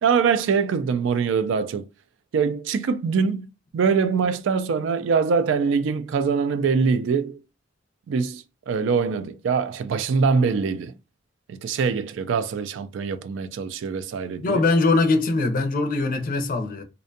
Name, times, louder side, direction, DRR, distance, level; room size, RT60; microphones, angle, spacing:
voice 1, 0.0-1.9 2.3-7.4 8.1-11.0 11.5-14.6, right 5 dB, 70° right, 0.3 m, -23 dB
voice 2, 14.4-16.8, left 3 dB, 45° left, 0.5 m, -22 dB
2.5 x 2.2 x 2.6 m
head